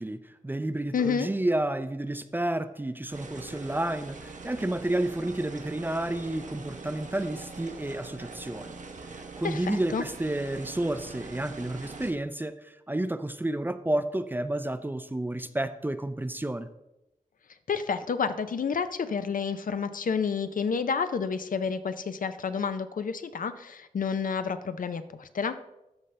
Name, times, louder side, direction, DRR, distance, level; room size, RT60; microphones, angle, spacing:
voice 1, 0.0-8.8 9.1-16.7, right 1 dB, 15° right, 11 dB, 0.4 m, -31 dB
voice 2, 0.9-1.3 9.4-10.0 17.7-25.6, left 6 dB, 80° left, 11 dB, 0.5 m, -30 dB
sound 1, 3.1-12.1, right 3 dB, 65° right, 0.9 m, -43 dB
13.0 x 5.4 x 3.3 m, 0.93 s
wide cardioid pair, 110°, 14 cm